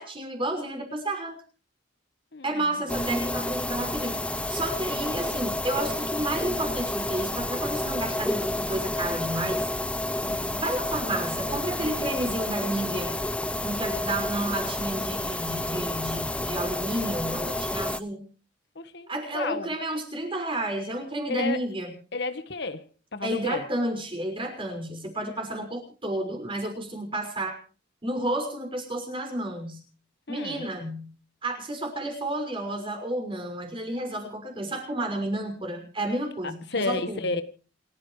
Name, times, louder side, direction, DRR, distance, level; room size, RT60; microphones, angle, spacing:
voice 1, 0.0-1.4 2.4-4.2 4.5-9.7 10.5-13.2 13.6-18.3 19.1-22.0 23.2-27.6 28.0-29.8 30.3-31.1 31.4-37.3, right 1 dB, 25° right, 4 dB, 5.9 m, -31 dB
voice 2, 2.3-2.6 10.2-10.6 18.7-19.7 21.3-21.6 22.1-23.6 30.3-30.6 36.4-37.4, left 3 dB, 60° left, 10 dB, 1.4 m, -32 dB
sound 1, 2.9-18.0, left 1 dB, 5° left, 0.7 m, -30 dB
28.5 x 14.5 x 3.2 m, 0.38 s
head